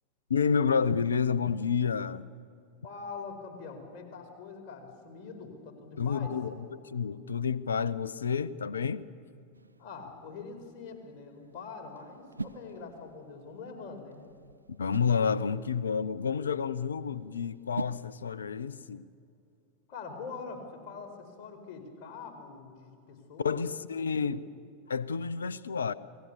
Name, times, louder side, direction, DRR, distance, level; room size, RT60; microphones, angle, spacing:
voice 1, 0.3-2.3 6.0-9.0 14.8-19.0 23.4-24.5 24.9-25.9, left 6 dB, 70° left, 0.7 m, -29 dB
voice 2, 2.8-6.3 9.8-14.2 19.9-23.6 24.0-24.3, left 4 dB, 40° left, 4.8 m, -44 dB
sound 1, 9.5-18.8, right 3 dB, 80° right, 0.5 m, -46 dB
28.0 x 20.0 x 6.9 m
figure-of-eight pair, 90°, 0 cm